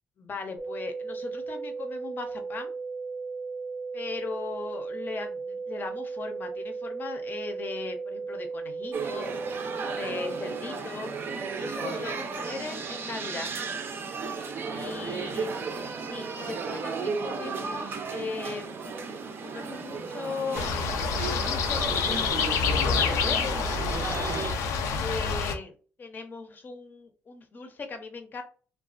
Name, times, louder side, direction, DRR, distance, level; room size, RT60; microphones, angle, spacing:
voice 1, 0.2-2.7 3.9-9.3 9.9-11.1 11.6-13.5 14.7-15.5 16.0-18.8 19.4-23.6 25.0-28.4, left 4 dB, 40° left, 5 dB, 0.6 m, -38 dB
sound 1, 0.6-10.6, right 4 dB, 5° right, 0.7 m, -36 dB
sound 2, 8.9-24.5, right 5 dB, 45° right, 0.4 m, -34 dB
sound 3, 20.5-25.5, left 5 dB, 85° left, 0.4 m, -27 dB
2.4 x 2.3 x 2.4 m, 0.39 s
cardioid pair, 100°, 5 cm